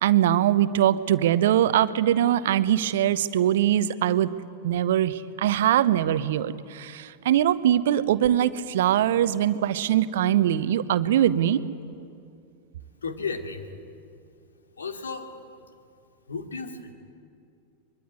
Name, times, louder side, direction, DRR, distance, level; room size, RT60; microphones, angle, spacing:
voice 1, 0.0-4.3 4.6-11.6, right 11 dB, 55° right, 14 dB, 0.9 m, -22 dB
voice 2, 13.0-13.7 14.8-15.3 16.3-16.9, left 4 dB, 70° left, 5 dB, 2.5 m, -33 dB
23.5 x 23.0 x 9.5 m, 2.4 s
figure-of-eight pair, 90°, 0 cm